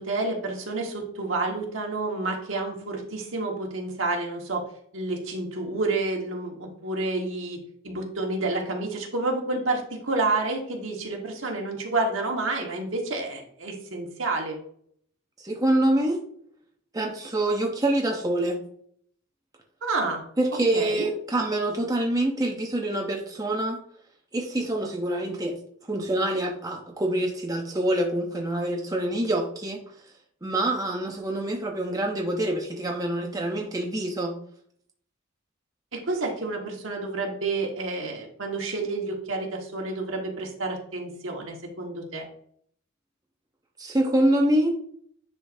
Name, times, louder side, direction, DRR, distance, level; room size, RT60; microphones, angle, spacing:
voice 1, 0.0-4.6 4.9-14.6 19.8-20.2 20.7-21.1 35.9-42.3, right 3 dB, 70° right, 1 dB, 1.4 m, -29 dB
voice 2, 15.4-16.2 16.9-18.6 20.4-23.8 24.3-25.5 25.9-29.8 30.4-34.3 43.8-44.7, right 1 dB, 20° right, 0 dB, 0.7 m, -25 dB
9.9 x 3.7 x 2.7 m, 0.63 s
head